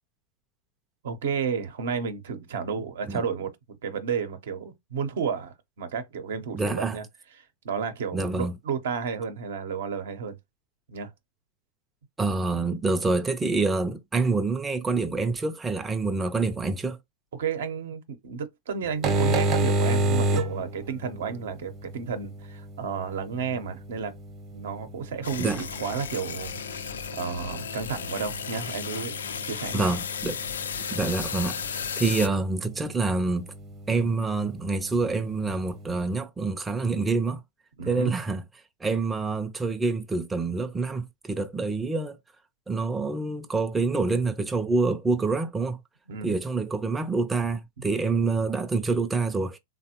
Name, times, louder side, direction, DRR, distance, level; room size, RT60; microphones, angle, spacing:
voice 1, 1.0-7.0 7.4-10.4 10.9-11.1 17.3-24.1 24.5-29.1 29.4-29.9 37.8-38.1 46.1-46.3 47.8-47.9, right 6 dB, 75° right, 0.7 m, -32 dB
voice 2, 6.5-7.0 8.1-8.6 12.2-17.0 25.4-25.6 29.7-30.4 30.9-31.6 32.0-33.5 33.9-37.4 37.8-38.4 38.8-42.2 42.7-45.8 46.2-49.6, right 3 dB, 10° right, 0.4 m, -26 dB
sound 1, 18.9-36.2, right 2 dB, 35° right, 0.7 m, -33 dB
sound 2, 25.2-32.3, left 7 dB, 85° left, 0.3 m, -34 dB
3.3 x 2.1 x 2.8 m
hypercardioid pair, 115°, 0 cm